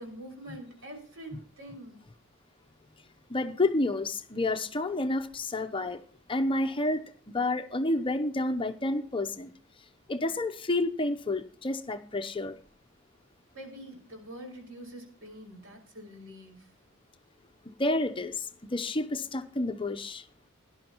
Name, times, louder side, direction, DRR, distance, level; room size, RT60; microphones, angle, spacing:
voice 1, 0.0-2.0 13.5-16.7, right 1 dB, 75° right, 3 dB, 5.6 m, -45 dB
voice 2, 3.3-6.0 6.3-7.0 7.3-9.5 10.1-12.6 17.8-20.2, left 2 dB, 25° left, 8 dB, 0.7 m, -29 dB
18.0 x 11.0 x 3.0 m, 0.43 s
head